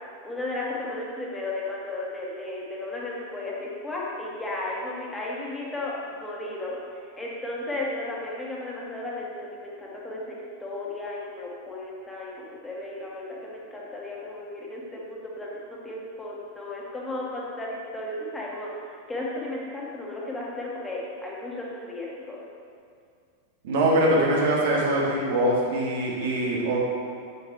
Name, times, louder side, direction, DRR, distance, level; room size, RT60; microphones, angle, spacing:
voice 1, 0.2-6.8 7.1-22.4, left 2 dB, 10° left, -5 dB, 2.1 m, -34 dB
voice 2, 23.6-26.8, right 1 dB, 55° right, -3 dB, 2.1 m, -23 dB
9.0 x 8.7 x 3.2 m, 2.2 s
figure-of-eight pair, 90°, 0 cm